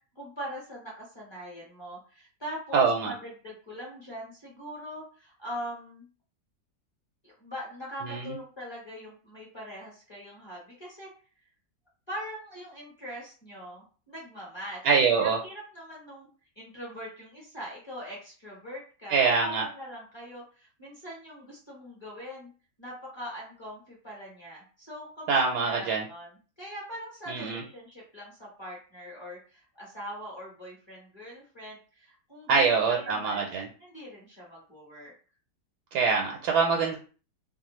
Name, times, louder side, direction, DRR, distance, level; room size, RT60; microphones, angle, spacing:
voice 1, 0.1-6.1 7.2-11.1 12.1-14.9 15.2-16.3 16.6-22.5 22.8-26.3 26.6-35.1, equal, 20° left, -5 dB, 0.9 m, -42 dB
voice 2, 2.7-3.1 8.0-8.4 14.8-15.4 19.1-19.6 25.3-26.0 27.3-27.6 32.5-33.7 35.9-37.0, right 5 dB, 80° right, 0 dB, 1.1 m, -24 dB
2.6 x 2.2 x 3.0 m, 0.38 s
omnidirectional pair, 1.7 m